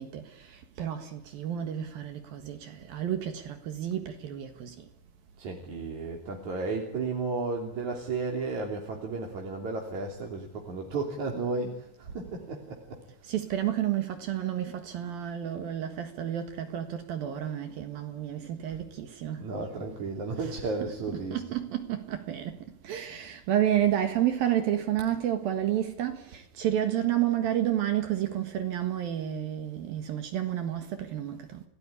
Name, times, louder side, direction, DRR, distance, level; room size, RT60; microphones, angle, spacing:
voice 1, 0.0-4.8 13.2-19.4 20.4-22.6 22.8-31.6, right 11 dB, 65° right, 3.2 m, -30 dB
voice 2, 5.4-13.0 18.7-18.8 19.4-21.4, right 3 dB, 45° right, 4.2 m, -33 dB
30.0 x 17.5 x 9.9 m
omnidirectional pair, 4.8 m